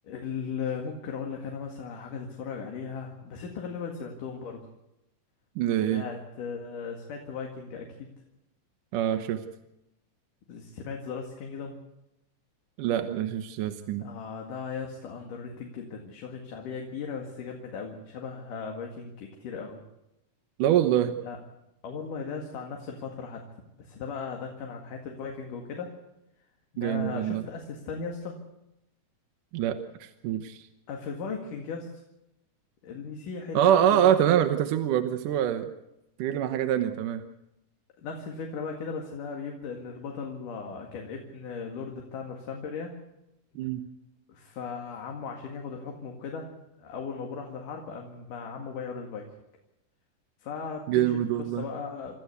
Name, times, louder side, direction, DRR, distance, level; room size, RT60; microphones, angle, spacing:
voice 1, 0.0-4.7 5.9-8.1 10.5-11.8 14.0-19.8 21.2-21.4 21.8-23.4 23.8-25.9 26.7-28.4 30.9-32.0 32.8-34.1 38.0-43.0 44.3-46.5 46.8-49.3 50.4-52.2, left 5 dB, 75° left, 2 dB, 3.6 m, -37 dB
voice 2, 5.6-6.1 8.9-9.4 12.8-14.1 20.6-21.1 26.8-27.4 29.5-30.6 33.5-35.7 36.2-37.2 43.6-43.8 50.9-51.7, right 10 dB, 75° right, 7 dB, 2.6 m, -25 dB
27.5 x 13.5 x 8.2 m, 0.88 s
omnidirectional pair, 3.8 m